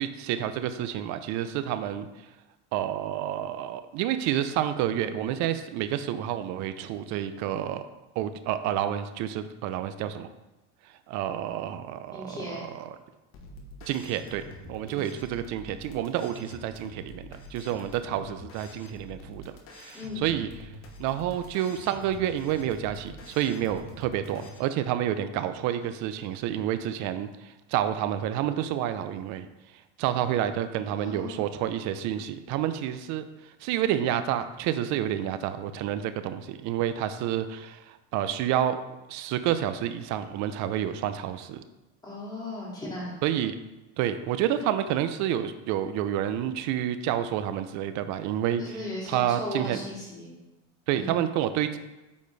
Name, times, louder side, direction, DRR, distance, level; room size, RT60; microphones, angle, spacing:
voice 1, 0.0-2.1 2.7-7.8 8.2-10.3 11.1-13.0 13.9-20.7 21.0-29.5 30.0-38.8 39.1-41.6 43.2-43.6 44.0-48.6 49.1-49.8 50.9-51.8, right 11 dB, 55° right, 11 dB, 0.5 m, -29 dB
voice 2, 12.1-12.7 14.8-15.0 19.9-20.3 30.9-31.4 42.0-43.1 48.6-50.4 50.9-51.2, left 1 dB, 10° left, -5 dB, 2.2 m, -37 dB
sound 1, 13.3-24.6, left 1 dB, 35° left, 1.0 m, -46 dB
8.4 x 4.3 x 3.3 m, 1.0 s
supercardioid pair, 135°, 36 cm